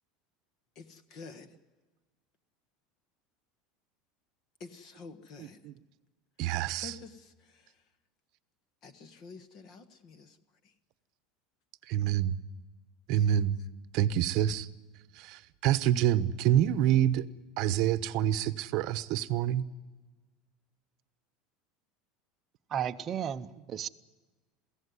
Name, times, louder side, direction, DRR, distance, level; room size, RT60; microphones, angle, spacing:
voice 1, 0.7-1.6 4.6-5.6 6.7-7.8 8.8-10.4 10.6-10.7 13.2-13.4, left 4 dB, 40° left, 10 dB, 1.5 m, -49 dB
voice 2, 6.4-6.9 11.9-12.3 13.1-13.6 13.9-14.7 15.1-17.3 17.6-19.6, right 11 dB, 50° right, 14 dB, 0.9 m, -27 dB
voice 3, 22.7-23.9, right 9 dB, 25° right, 8 dB, 0.7 m, -34 dB
23.0 x 16.5 x 9.6 m, 1.3 s
cardioid pair, 165°, 0 cm